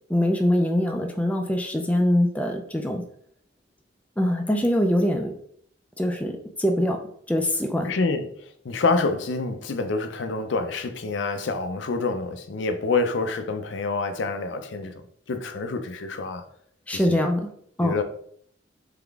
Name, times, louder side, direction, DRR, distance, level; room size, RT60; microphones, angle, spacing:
voice 1, 0.1-3.0 4.2-5.3 6.0-6.3 6.6-7.0 7.3-7.9 16.9-17.5 17.8-18.0, left 1 dB, 5° left, 0.4 m, -23 dB
voice 2, 7.8-14.9 15.3-16.4 16.9-17.2 17.8-18.0, left 3 dB, 70° left, 0.5 m, -27 dB
3.8 x 3.5 x 3.4 m
head